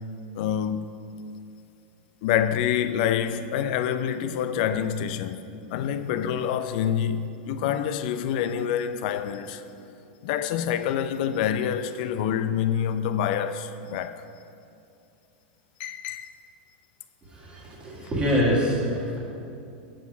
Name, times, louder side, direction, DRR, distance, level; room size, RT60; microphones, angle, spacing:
voice 1, 0.4-0.9 2.2-5.4 5.7-9.6 10.2-14.2 15.8-16.3, left 9 dB, 55° left, 0.4 m, -27 dB
voice 2, 17.2-19.2, equal, 15° right, 1.5 m, -25 dB
7.6 x 6.2 x 4.4 m
supercardioid pair, 150°, 6 cm